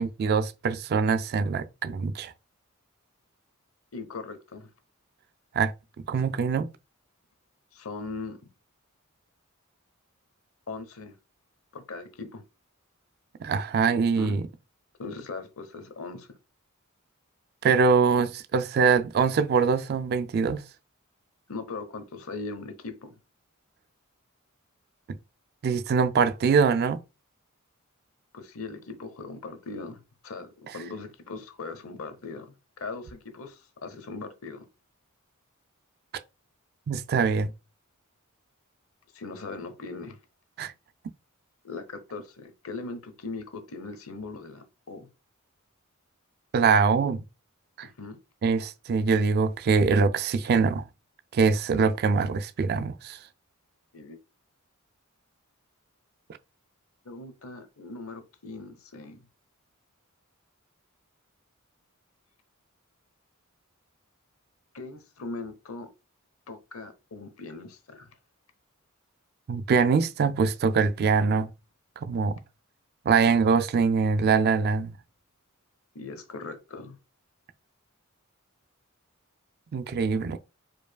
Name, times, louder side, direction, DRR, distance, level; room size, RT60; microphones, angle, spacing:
voice 1, 0.0-2.3 5.5-5.7 6.1-6.7 13.4-14.4 17.6-20.6 25.6-27.0 36.9-37.5 40.6-40.7 46.5-47.2 47.8-47.9 48.4-50.8 51.3-53.2 69.5-71.5 72.0-72.4 73.1-74.9 79.7-80.4, right 5 dB, 45° right, 0.3 m, -23 dB
voice 2, 3.9-4.7 7.7-8.4 10.7-11.2 11.7-12.4 14.1-14.4 15.0-16.4 21.5-23.2 28.3-30.5 30.7-34.7 39.1-40.2 41.6-45.1 47.8-48.2 53.9-54.2 57.0-59.3 64.7-65.9 66.5-68.1 75.9-77.0, left 3 dB, 70° left, 0.9 m, -39 dB
4.7 x 4.6 x 2.3 m
head